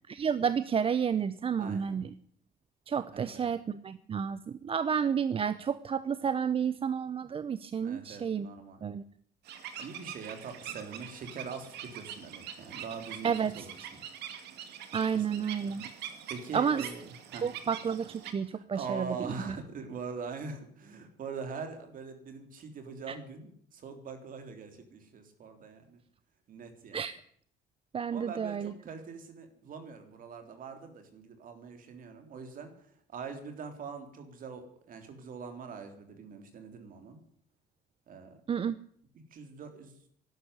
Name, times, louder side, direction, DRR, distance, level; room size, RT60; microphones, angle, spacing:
voice 1, 0.1-2.1 2.9-8.5 8.8-9.0 13.2-13.5 14.9-15.8 16.5-16.9 17.4-19.6 23.1-23.2 26.9-27.2 27.9-28.7 38.5-38.8, right 7 dB, 35° right, 14 dB, 0.7 m, -31 dB
voice 2, 1.6-2.0 3.1-3.5 7.8-8.8 9.8-14.0 15.1-17.5 18.5-26.0 26.5-27.0 28.1-32.7 33.1-37.2 38.1-38.4 39.3-40.0, right 5 dB, 55° right, 6 dB, 3.5 m, -43 dB
sound 1, 9.5-18.3, right 9 dB, 80° right, 2.3 m, -44 dB
12.0 x 12.0 x 9.9 m, 0.66 s
cardioid pair, 110°, 17 cm